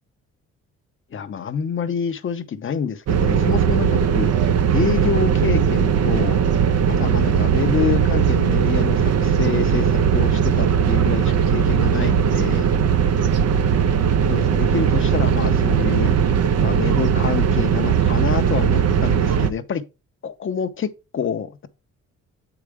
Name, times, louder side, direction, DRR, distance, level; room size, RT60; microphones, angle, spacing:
voice 1, 1.1-4.3 4.7-6.4 6.9-12.7 14.3-16.2 16.5-19.8 20.2-21.7, left 7 dB, 40° left, 0.8 m, -27 dB
sound 1, 3.1-19.5, right 8 dB, 55° right, 0.8 m, -19 dB
7.4 x 4.9 x 3.5 m
cardioid pair, 90°, 30 cm